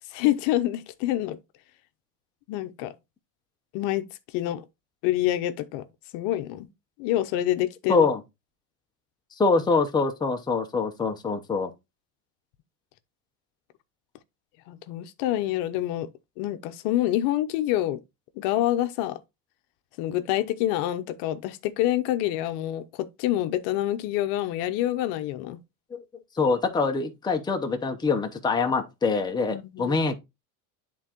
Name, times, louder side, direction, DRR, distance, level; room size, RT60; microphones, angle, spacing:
voice 1, 0.1-1.4 2.5-2.9 3.7-4.0 4.3-4.6 5.0-5.8 6.1-6.7 7.0-8.1 14.7-16.1 16.4-18.0 18.4-19.2 20.0-25.6 29.5-30.0, left 14 dB, 60° left, 0.9 m, -27 dB
voice 2, 7.9-8.2 9.4-11.7 25.9-26.0 26.4-30.2, left 4 dB, 10° left, 0.9 m, -24 dB
10.5 x 3.7 x 3.0 m
supercardioid pair, 135°, 45 cm